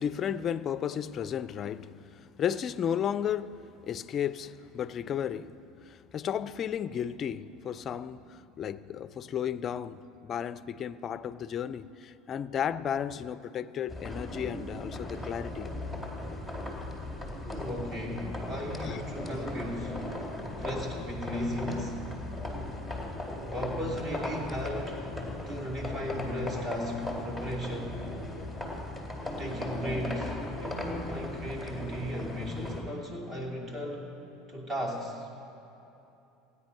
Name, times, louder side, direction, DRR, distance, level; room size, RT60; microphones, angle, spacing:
voice 1, 0.0-15.7 18.9-19.0, left 9 dB, 40° left, 0.4 m, -34 dB
sound 1, 13.9-32.8, left 1 dB, ahead, 2.3 m, -37 dB
voice 2, 17.4-20.1 20.6-22.0 23.5-25.0 25.5-28.0 29.4-34.1 34.5-35.4, equal, 30° right, 2.8 m, -36 dB
16.0 x 9.7 x 5.4 m
hypercardioid pair, 90°, 0 cm